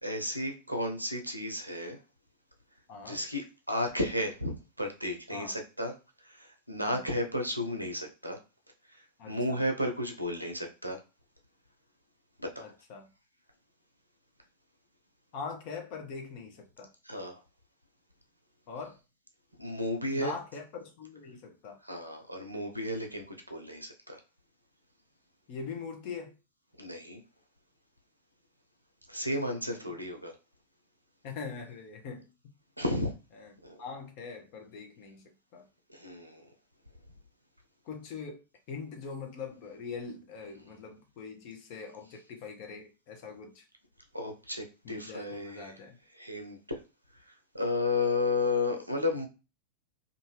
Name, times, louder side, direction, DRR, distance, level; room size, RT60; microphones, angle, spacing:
voice 1, 0.0-2.0 3.0-5.9 6.2-8.4 8.9-11.0 12.4-12.7 17.0-17.4 19.6-20.3 21.8-24.2 26.8-27.2 29.1-30.3 32.8-33.1 33.6-33.8 35.9-36.5 44.1-45.8 46.1-46.8 47.3-49.3, left 2 dB, 85° right, 4 dB, 0.6 m, -33 dB
voice 2, 2.9-3.2 5.3-5.5 6.8-7.0 9.2-9.6 12.6-13.1 15.3-16.9 18.7-19.0 20.1-21.8 25.5-26.3 29.6-29.9 31.2-32.2 33.4-33.5 33.8-35.7 37.8-38.4 38.7-43.6 44.8-46.0, left 5 dB, 45° left, 3 dB, 0.8 m, -42 dB
2.6 x 2.5 x 3.1 m, 0.30 s
figure-of-eight pair, 90°, 0 cm